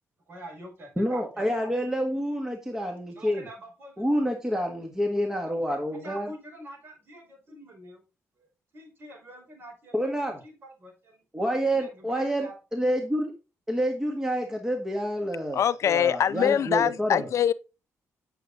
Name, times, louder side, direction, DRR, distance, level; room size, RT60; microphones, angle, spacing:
voice 1, 0.3-1.9 3.1-4.2 5.7-8.0 8.4-8.5 8.7-11.2 11.8-12.6, right 1 dB, 40° right, 5.1 m, -46 dB
voice 2, 1.0-3.4 4.0-6.3 9.9-10.4 11.3-13.3 13.7-17.2, equal, 10° right, 1.6 m, -28 dB
voice 3, 15.5-17.5, left 9 dB, 60° left, 0.4 m, -23 dB
9.2 x 6.9 x 4.0 m
cardioid pair, 120°, 6 cm